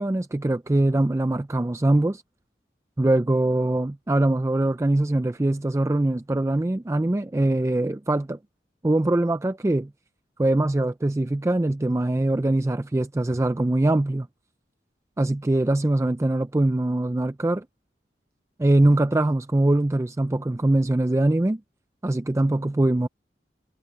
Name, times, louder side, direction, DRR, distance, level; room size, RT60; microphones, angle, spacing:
voice 1, 0.0-2.2 3.0-8.4 8.8-9.9 10.4-14.3 15.2-17.6 18.6-21.6 22.0-23.1, right 1 dB, 15° right, 0.3 m, -22 dB
head